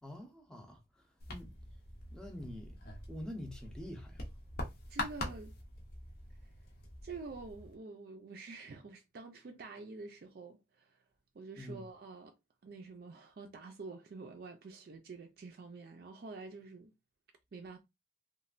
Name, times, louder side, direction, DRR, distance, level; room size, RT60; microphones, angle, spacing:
voice 1, 0.0-1.5 2.1-2.8 3.1-4.2 11.6-11.9, left 1 dB, 5° left, 0.6 m, -46 dB
sound 1, 1.2-7.7, left 1 dB, 55° left, 0.7 m, -44 dB
voice 2, 4.9-5.5 7.0-11.0 11.3-12.3 12.6-16.9 17.5-17.8, right 3 dB, 55° right, 0.4 m, -48 dB
3.1 x 2.2 x 2.4 m
head